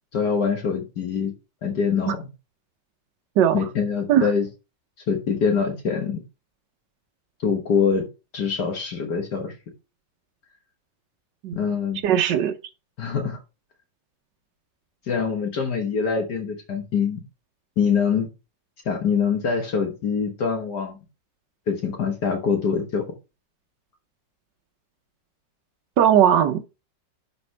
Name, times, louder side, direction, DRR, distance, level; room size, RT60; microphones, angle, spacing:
voice 1, 0.1-1.3 1.6-2.2 3.5-4.5 5.1-6.2 7.4-8.1 8.3-9.6 11.5-12.0 13.0-13.4 15.1-17.2 17.8-18.3 18.9-21.0 21.7-23.1, left 6 dB, 65° left, 1.9 m, -24 dB
voice 2, 12.0-12.5 26.0-26.6, right 10 dB, 75° right, 1.4 m, -18 dB
11.5 x 5.2 x 3.3 m
omnidirectional pair, 2.0 m